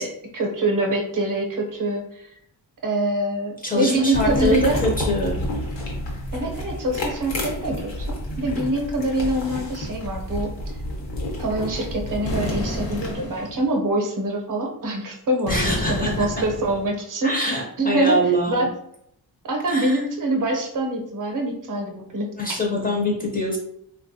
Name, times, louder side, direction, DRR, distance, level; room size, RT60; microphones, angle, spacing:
voice 1, 0.0-2.3 2.8-4.8 6.3-10.5 11.4-17.4 17.8-18.2 18.5-18.7 19.5-22.3, right 1 dB, 50° right, 1 dB, 0.6 m, -25 dB
voice 2, 3.6-5.4 15.5-16.3 17.2-18.7 19.7-20.0 22.4-23.6, equal, 20° left, -2 dB, 0.5 m, -24 dB
sound 1, 4.1-13.1, left 1 dB, 85° left, 1.0 m, -29 dB
sound 2, 12.3-13.7 15.5-16.9, left 1 dB, 60° left, 0.8 m, -30 dB
3.3 x 2.3 x 2.6 m, 0.73 s
wide cardioid pair, 155°, 42 cm